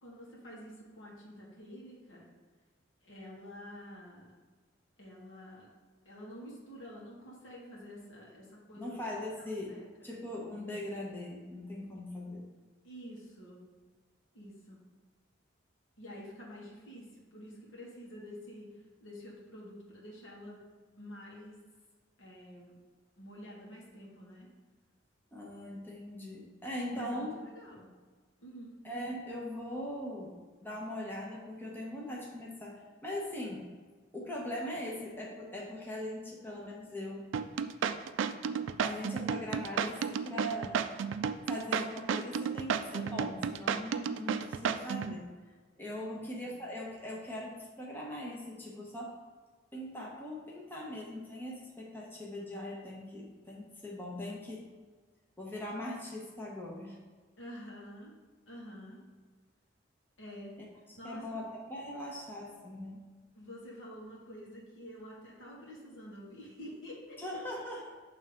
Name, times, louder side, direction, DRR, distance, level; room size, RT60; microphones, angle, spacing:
voice 1, 0.0-2.3 3.0-4.4 5.0-5.7 6.1-9.0 9.5-10.1 12.8-13.6 14.3-14.8 16.0-20.6 20.9-21.6 22.2-22.7 23.2-24.5 26.9-27.9 28.4-28.8 46.0-46.2 46.5-46.7 57.4-58.1 58.5-59.0 60.2-60.6 61.0-61.5 63.3-67.2, equal, 85° left, -4 dB, 1.7 m, -48 dB
voice 2, 8.8-9.7 10.0-12.4 25.3-27.4 28.8-33.7 34.1-37.3 38.8-40.8 41.5-49.1 49.7-54.7 55.4-57.0 61.0-63.0 67.2-67.9, left 1 dB, 10° left, -4 dB, 0.9 m, -40 dB
sound 1, 37.3-45.1, right 7 dB, 80° right, 0.3 m, -32 dB
7.0 x 3.3 x 5.1 m, 1.4 s
head